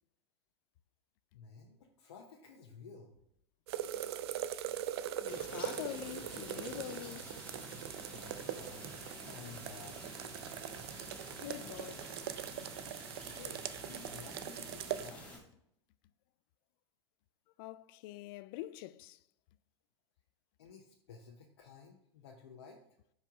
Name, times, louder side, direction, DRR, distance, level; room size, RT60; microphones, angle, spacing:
voice 1, 1.3-3.2 8.1-10.1 13.3-15.5 20.6-22.8, left 5 dB, 70° left, 0.8 m, -54 dB
sound 1, 3.7-15.1, right 11 dB, 65° right, 0.4 m, -42 dB
voice 2, 5.2-7.3 11.4-12.1 17.6-19.2, left 15 dB, 55° left, 0.4 m, -45 dB
sound 2, 5.3-15.4, equal, 10° left, 1.9 m, -49 dB
5.5 x 4.8 x 3.8 m
hypercardioid pair, 90°, 15 cm